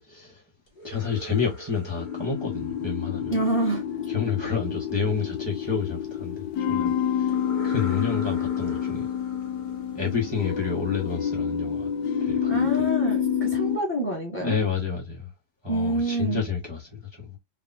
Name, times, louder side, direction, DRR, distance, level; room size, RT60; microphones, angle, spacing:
voice 1, 0.1-0.4 0.8-3.3 4.1-7.3 7.6-9.1 9.9-11.9 12.2-12.7 14.4-15.3 15.6-17.4, left 6 dB, 15° right, 1.1 m, -29 dB
sound 1, 0.7-3.6 7.3-11.0, right 2 dB, 30° left, 1.4 m, -43 dB
sound 2, 2.0-13.8, left 8 dB, 75° left, 1.2 m, -28 dB
voice 2, 3.3-3.8 12.5-14.6 15.7-16.4, right 1 dB, 5° left, 1.8 m, -27 dB
4.1 x 2.8 x 2.6 m
omnidirectional pair, 2.0 m